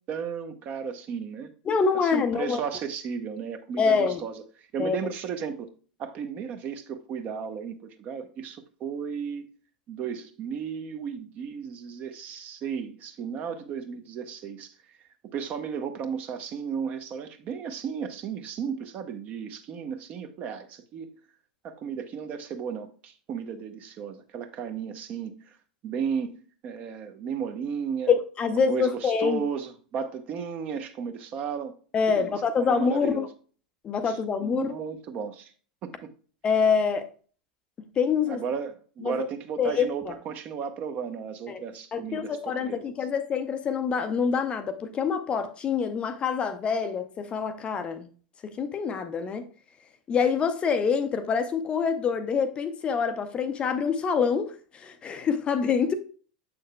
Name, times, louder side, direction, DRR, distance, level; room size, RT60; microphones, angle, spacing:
voice 1, 0.1-1.5 2.0-5.7 6.0-9.5 9.9-14.7 15.2-21.2 21.6-25.6 25.8-26.4 26.6-28.1 28.5-31.7 32.1-33.3 34.0-35.5 35.8-36.1 38.3-42.8, right 7 dB, 35° right, 0.9 m, -34 dB
voice 2, 1.7-2.6 3.8-4.2 4.8-5.0 28.1-29.4 31.9-33.3 33.8-34.7 36.4-37.1 38.0-38.4 39.0-39.2 39.6-40.1 41.5-41.6 41.9-48.1 48.4-49.5 50.1-55.9, left 6 dB, 25° left, 0.6 m, -26 dB
7.3 x 6.3 x 2.2 m
figure-of-eight pair, 85°, 4 cm